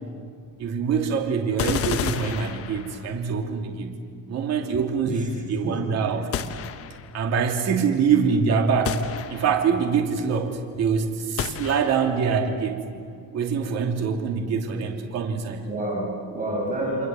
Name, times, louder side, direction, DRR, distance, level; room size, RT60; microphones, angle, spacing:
voice 1, 0.6-4.0 4.3-6.3 7.1-9.0 9.3-12.8 13.3-15.7, right 6 dB, 45° right, 3 dB, 2.9 m, -24 dB
sound 1, 1.6-3.2 6.3-7.2 8.9-9.8 11.4-12.2, left 8 dB, 40° left, 1.2 m, -31 dB
voice 2, 5.6-6.1 15.6-17.1, right 1 dB, 20° right, -1 dB, 7.6 m, -29 dB
29.5 x 24.0 x 7.7 m, 2.3 s
cardioid pair, 150°, 35 cm